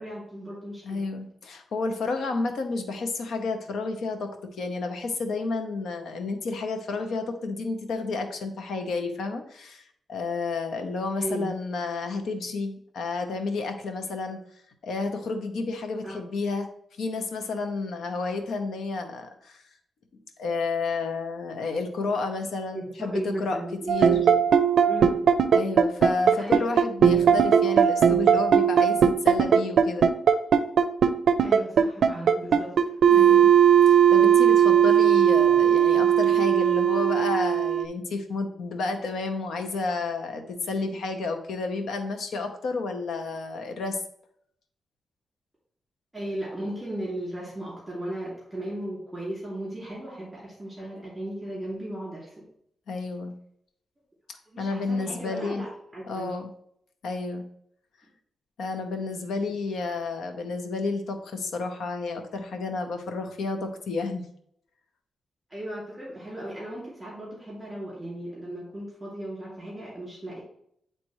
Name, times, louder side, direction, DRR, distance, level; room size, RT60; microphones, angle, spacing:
voice 1, 0.0-1.0 11.2-11.5 16.0-16.2 22.7-24.2 24.9-25.3 26.4-26.7 31.4-32.7 46.1-52.4 54.5-55.7 55.9-56.3 58.0-58.1 65.5-70.4, right 1 dB, 10° right, -6 dB, 2.6 m, -36 dB
voice 2, 0.8-4.3 4.6-9.8 10.1-14.4 14.8-16.7 17.0-19.6 20.4-23.6 23.9-24.1 25.5-30.1 33.1-33.5 33.9-44.0 52.9-53.3 54.6-55.7 56.1-56.5 57.0-57.4 58.6-64.3, left 3 dB, 85° left, 6 dB, 0.9 m, -31 dB
sound 1, 23.9-37.8, right 8 dB, 80° right, 0.4 m, -18 dB
9.8 x 3.4 x 3.1 m, 0.69 s
wide cardioid pair, 150°, 0 cm